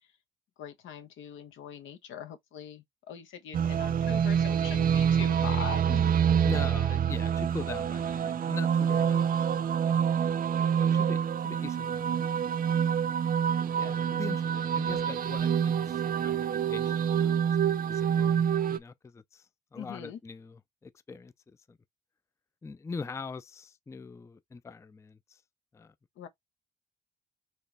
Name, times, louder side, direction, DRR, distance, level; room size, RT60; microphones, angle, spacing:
voice 1, 0.6-6.2 19.7-20.2 26.2-26.3, left 9 dB, 80° left, 1.1 m, -42 dB
sound 1, 3.5-18.8, right 8 dB, 45° right, 0.5 m, -27 dB
voice 2, 6.4-10.2 10.8-12.3 12.6-12.8 13.7-17.4 17.6-21.8 22.6-25.4 25.7-25.9, left 4 dB, 15° left, 0.4 m, -43 dB
4.4 x 3.0 x 3.3 m
cardioid pair, 90°, 20 cm